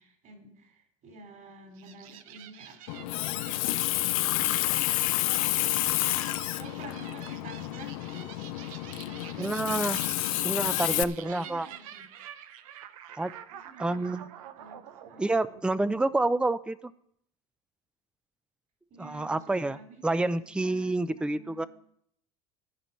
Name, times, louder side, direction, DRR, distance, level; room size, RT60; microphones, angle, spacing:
voice 1, 0.0-4.8 5.3-8.4 8.8-9.5 9.9-12.0 13.5-14.3 14.6-15.3 18.9-21.7, right 3 dB, 50° right, 3 dB, 4.8 m, -50 dB
sound 1, 1.8-16.4, right 10 dB, 80° right, 0.8 m, -48 dB
Water tap faucet, 2.9-11.0, left 17 dB, 80° left, 0.6 m, -29 dB
voice 2, 9.4-10.0 10.4-11.7 13.2-13.3 13.8-14.2 15.2-16.8 19.0-19.8 20.0-21.7, right 2 dB, 5° right, 16 dB, 0.6 m, -28 dB
13.5 x 5.2 x 9.1 m, 0.70 s
hypercardioid pair, 80°, 18 cm